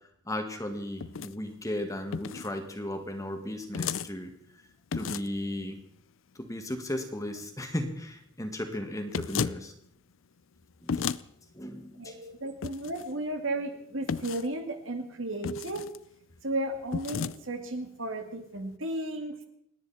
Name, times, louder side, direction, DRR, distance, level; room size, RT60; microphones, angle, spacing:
voice 1, 0.3-4.3 4.9-5.8 6.4-9.7 10.8-11.1 11.5-12.1, left 1 dB, 15° left, 5 dB, 1.9 m, -35 dB
sound 1, 1.0-1.3 2.1-2.5 3.7-4.1 4.9-5.4 9.1-9.6 10.9-11.2 12.6-13.1 14.1-14.5 15.4-16.0 16.9-17.4, left 6 dB, 75° left, 0.5 m, -33 dB
voice 2, 12.0-15.9 16.4-19.4, right 1 dB, 75° right, 5 dB, 2.3 m, -34 dB
28.5 x 10.0 x 4.3 m, 0.71 s
head